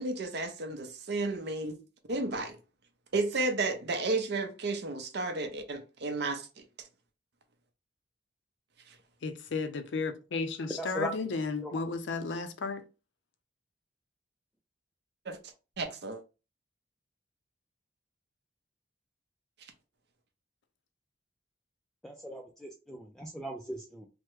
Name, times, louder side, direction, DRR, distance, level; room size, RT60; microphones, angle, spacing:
voice 1, 0.0-1.7 2.1-2.6 3.1-6.6 8.9-9.0 15.3-15.4 15.8-16.2, right 3 dB, 60° right, 0.6 m, -32 dB
voice 2, 9.2-12.8, left 4 dB, 70° left, 0.5 m, -33 dB
voice 3, 10.8-11.1 11.6-11.8 22.0-24.1, right 1 dB, 5° left, 0.3 m, -39 dB
3.4 x 2.0 x 3.0 m
head